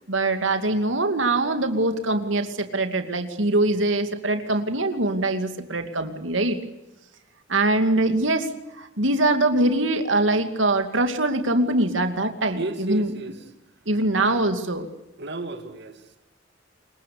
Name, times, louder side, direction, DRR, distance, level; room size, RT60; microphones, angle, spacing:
voice 1, 0.1-6.6 7.5-8.5 8.8-13.1 13.9-14.9, right 2 dB, 85° right, 7 dB, 2.6 m, -23 dB
voice 2, 12.5-13.4 14.1-14.5 15.2-16.2, right 2 dB, 60° right, 6 dB, 2.4 m, -33 dB
27.0 x 23.0 x 8.6 m, 0.95 s
head